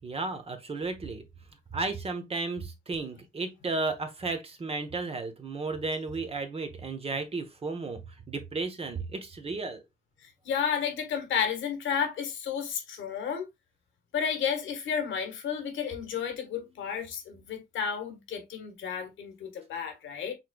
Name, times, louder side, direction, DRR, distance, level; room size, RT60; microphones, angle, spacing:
voice 1, 0.0-1.2 1.7-8.0 8.3-9.8, right 3 dB, 30° right, 1.0 m, -33 dB
voice 2, 10.2-13.4 14.1-20.4, left 7 dB, 75° left, 1.5 m, -32 dB
5.7 x 3.3 x 2.3 m
cardioid pair, 90°, 20 cm